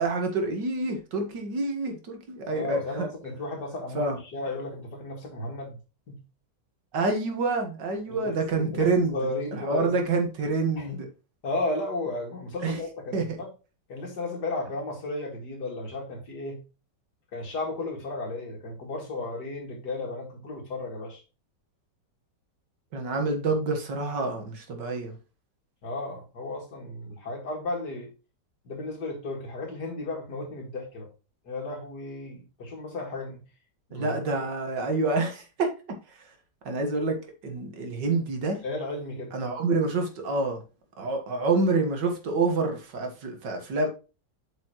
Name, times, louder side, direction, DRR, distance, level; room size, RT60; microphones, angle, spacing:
voice 1, 0.0-3.1 3.9-4.2 6.9-9.2 9.5-11.1 12.6-12.8 13.1-13.4 22.9-25.1 33.9-35.7 36.7-37.2 37.4-38.6 39.3-40.6 41.0-43.9, right 3 dB, 75° right, 2.2 m, -27 dB
voice 2, 2.5-5.8 6.1-6.2 8.1-10.0 10.8-11.0 11.4-13.5 13.9-16.6 17.3-21.2 25.8-28.1 28.6-31.1 31.5-33.4 33.9-34.4 38.6-39.3, left 2 dB, 65° left, 2.5 m, -34 dB
8.0 x 5.4 x 3.0 m
omnidirectional pair, 1.9 m